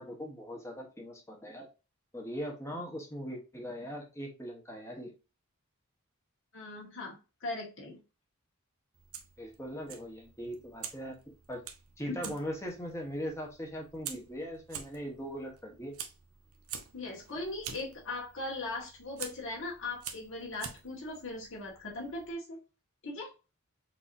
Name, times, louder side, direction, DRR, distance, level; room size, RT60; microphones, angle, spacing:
voice 1, 0.0-1.7 2.1-5.1 9.4-11.6 12.0-15.9, equal, 15° left, 0 dB, 1.1 m, -40 dB
voice 2, 6.5-8.0 12.2-12.4 16.9-22.6 23.0-23.3, left 2 dB, 60° left, -3 dB, 1.6 m, -39 dB
Fire, 8.9-22.3, right 8 dB, 75° right, 0.7 m, -48 dB
6.1 x 2.9 x 2.6 m, 0.31 s
head